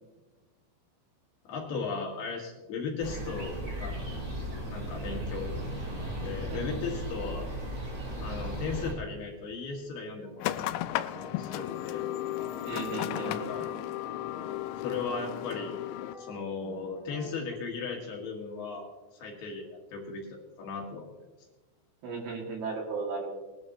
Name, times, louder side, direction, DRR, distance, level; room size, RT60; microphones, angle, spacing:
voice 1, 1.5-4.0 4.7-5.6 6.2-7.5 8.2-10.7 11.2-12.1 13.3-13.7 14.8-15.8 16.1-18.9 19.2-21.1, left 4 dB, 65° left, 0 dB, 3.5 m, -37 dB
sound 1, 3.0-8.9, right 1 dB, 30° right, 4.5 m, -36 dB
sound 2, 10.2-17.6, equal, ahead, 1.7 m, -50 dB
sound 3, 10.4-16.1, left 14 dB, 85° left, 2.6 m, -34 dB
voice 2, 12.7-13.7 22.0-23.4, right 4 dB, 60° right, -1 dB, 4.1 m, -36 dB
20.5 x 12.0 x 3.1 m, 1.1 s
omnidirectional pair, 5.4 m